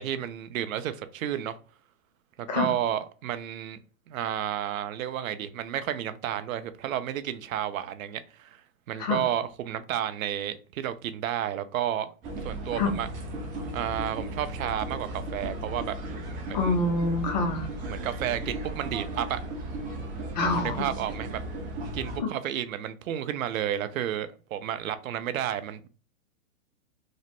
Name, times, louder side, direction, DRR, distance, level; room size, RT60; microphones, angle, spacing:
voice 1, 0.0-1.6 2.4-3.8 4.1-8.6 8.9-12.1 12.4-13.1 13.7-16.0 16.5-16.7 17.9-19.4 20.5-21.4 21.9-25.9, right 10 dB, 70° right, 0.5 m, -31 dB
sound 1, 12.2-22.2, right 1 dB, 20° right, 0.5 m, -36 dB
voice 2, 16.5-17.7 20.3-20.8 22.2-22.3, left 3 dB, 30° left, 0.4 m, -26 dB
3.0 x 2.0 x 3.0 m
hypercardioid pair, 135°, 42 cm